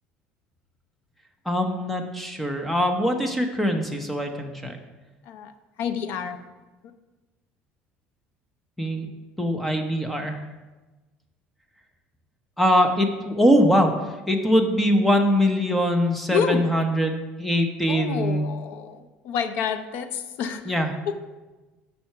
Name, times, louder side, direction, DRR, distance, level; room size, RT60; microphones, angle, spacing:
voice 1, 1.5-4.8 8.8-9.1 9.4-10.4 12.6-13.9 14.3-18.5 20.7-20.9, equal, 5° left, 4 dB, 0.7 m, -22 dB
voice 2, 5.8-6.4 16.3-16.7 17.9-20.7 21.1-21.2, left 7 dB, 60° left, 9 dB, 0.6 m, -28 dB
7.5 x 5.7 x 5.7 m, 1.2 s
cardioid pair, 170°, 4 cm